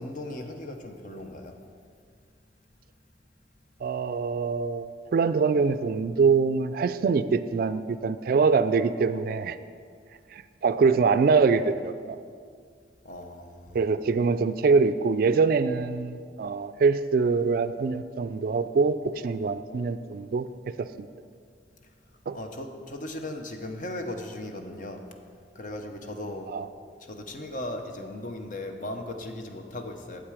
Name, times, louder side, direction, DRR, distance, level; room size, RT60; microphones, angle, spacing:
voice 1, 0.0-1.5 13.0-13.9 22.3-25.0 25.5-26.5 27.0-30.2, left 1 dB, 50° left, 4 dB, 0.8 m, -37 dB
voice 2, 3.8-9.6 10.3-12.2 13.7-20.5 20.8-21.1 22.3-22.4 26.5-26.7, right 4 dB, 55° right, 12 dB, 0.3 m, -24 dB
8.8 x 7.3 x 4.9 m, 2.1 s
head